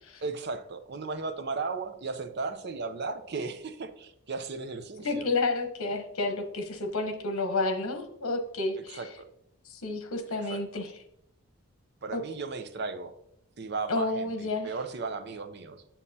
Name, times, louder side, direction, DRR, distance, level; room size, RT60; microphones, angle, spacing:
voice 1, 0.2-5.3 8.9-9.3 10.4-10.6 12.0-13.1 13.6-14.3 14.6-15.8, right 4 dB, 50° right, 8 dB, 0.6 m, -35 dB
voice 2, 5.0-9.0 9.6-10.9 12.1-12.2 13.9-14.7, left 2 dB, 85° left, 5 dB, 1.0 m, -30 dB
7.3 x 7.0 x 2.8 m, 0.76 s
head